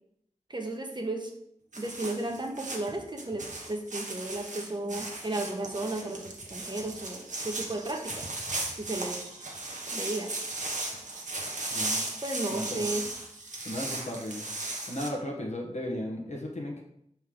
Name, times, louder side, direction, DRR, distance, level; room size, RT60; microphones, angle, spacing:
voice 1, 0.5-1.3 1.8-8.3 8.8-9.4 9.9-10.3 12.2-13.0, right 2 dB, 40° right, 2 dB, 1.0 m, -34 dB
sound 1, 1.7-15.1, right 2 dB, 80° right, 1.1 m, -36 dB
voice 2, 12.5-12.8 13.6-14.5 14.9-16.8, left 1 dB, 70° left, -1 dB, 1.5 m, -35 dB
5.6 x 4.4 x 5.0 m, 0.74 s
wide cardioid pair, 65°, 12 cm